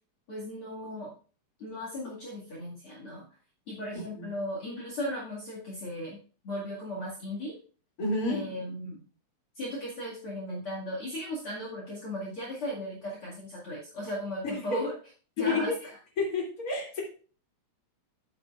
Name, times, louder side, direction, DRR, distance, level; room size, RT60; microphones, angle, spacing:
voice 1, 0.3-1.1 1.6-3.3 3.7-6.2 6.4-7.5 8.3-9.1 9.6-14.9 15.4-15.7, left 1 dB, 50° left, -5 dB, 2.8 m, -36 dB
voice 2, 8.0-8.5 14.4-14.8 15.4-15.7 16.2-17.0, left 3 dB, 30° left, -2 dB, 3.1 m, -30 dB
12.0 x 9.0 x 2.5 m, 0.40 s
omnidirectional pair, 3.4 m